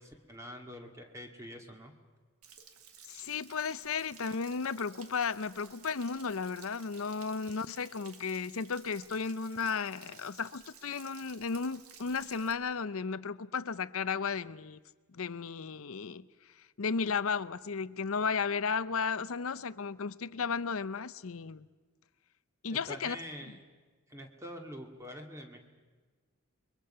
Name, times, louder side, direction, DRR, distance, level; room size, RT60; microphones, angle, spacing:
voice 1, 0.0-1.9 22.7-23.6 24.1-25.6, equal, 15° right, 2.2 m, -45 dB
Stream / Splash splatter / Trickle dribble, 2.4-12.5, right 7 dB, 75° right, 1.8 m, -55 dB
voice 2, 3.1-14.8 15.1-16.3 16.8-21.7 22.6-23.2 23.5-23.6, left 5 dB, 65° left, 0.6 m, -34 dB
29.5 x 23.0 x 5.6 m
head